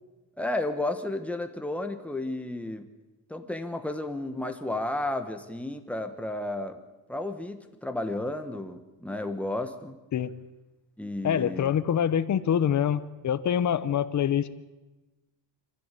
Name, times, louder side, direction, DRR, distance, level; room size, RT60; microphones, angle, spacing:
voice 1, 0.4-2.9 3.3-6.8 7.1-10.0 11.0-11.7, left 2 dB, 5° left, 6 dB, 1.3 m, -32 dB
voice 2, 11.2-14.5, left 9 dB, 40° left, 13 dB, 0.9 m, -25 dB
24.0 x 15.0 x 8.4 m, 1.1 s
cardioid pair, 180°, 47 cm